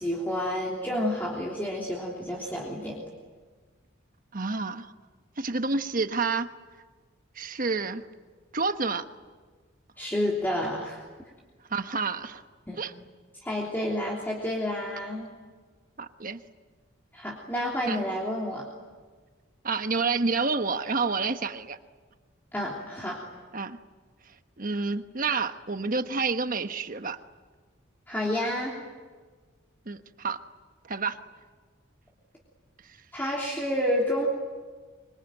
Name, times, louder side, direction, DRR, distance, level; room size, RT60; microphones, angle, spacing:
voice 1, 0.0-3.0 10.0-11.0 12.7-12.8 13.4-15.3 17.1-18.6 22.5-23.2 28.1-28.7 33.1-34.3, left 1 dB, 10° left, -4 dB, 3.2 m, -29 dB
voice 2, 4.3-4.9 5.4-6.5 7.3-8.0 8.5-9.0 11.7-12.4 12.8-12.9 16.0-16.4 17.9-18.0 19.6-21.8 23.5-23.8 24.3-27.2 29.9-30.4 30.8-31.2, right 4 dB, 45° right, 9 dB, 1.2 m, -29 dB
25.5 x 25.0 x 9.2 m, 1.5 s
head